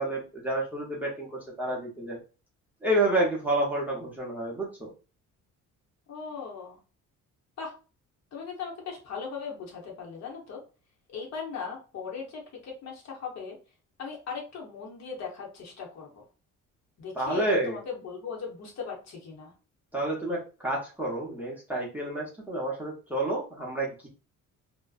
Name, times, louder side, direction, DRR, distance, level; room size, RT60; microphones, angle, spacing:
voice 1, 0.0-2.2 2.8-4.9 17.2-17.8 19.9-24.1, right 1 dB, 5° right, -3 dB, 0.6 m, -29 dB
voice 2, 6.1-6.8 7.6-7.7 8.3-10.6 11.1-13.6 14.0-16.2 17.0-19.5, left 5 dB, 55° left, -1 dB, 0.9 m, -38 dB
2.6 x 2.1 x 2.3 m, 0.35 s
cardioid pair, 135°, 32 cm